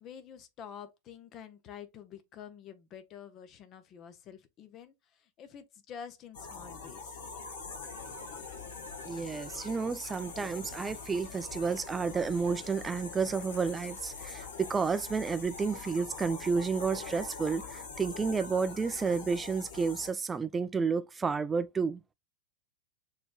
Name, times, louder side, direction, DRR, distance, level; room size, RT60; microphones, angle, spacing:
voice 1, 0.0-7.2, left 8 dB, 35° left, 0.8 m, -48 dB
sound 1, 6.3-20.1, left 4 dB, 60° left, 1.6 m, -43 dB
sound 2, 7.8-15.9, left 6 dB, 75° left, 1.3 m, -56 dB
voice 2, 9.1-22.1, right 5 dB, 15° right, 0.4 m, -31 dB
6.8 x 3.3 x 2.3 m
figure-of-eight pair, 90°, 0 cm